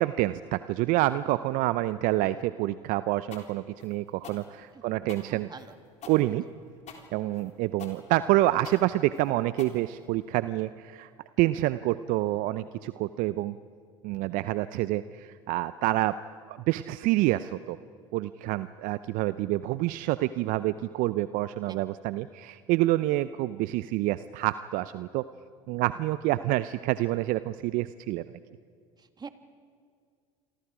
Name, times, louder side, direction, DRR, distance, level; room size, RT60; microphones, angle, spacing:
voice 1, 0.0-5.5 6.1-6.4 7.1-11.1 11.4-13.6 14.0-16.1 16.5-17.8 18.1-25.2 25.7-28.2, right 16 dB, 60° right, 14 dB, 0.6 m, -27 dB
sound 1, 3.3-10.4, left 6 dB, 45° left, 3.8 m, -47 dB
voice 2, 5.3-5.8 21.7-22.0 29.0-29.3, right 5 dB, 25° right, 8 dB, 1.8 m, -46 dB
27.5 x 24.5 x 5.0 m, 2.1 s
hypercardioid pair, 75°, 16 cm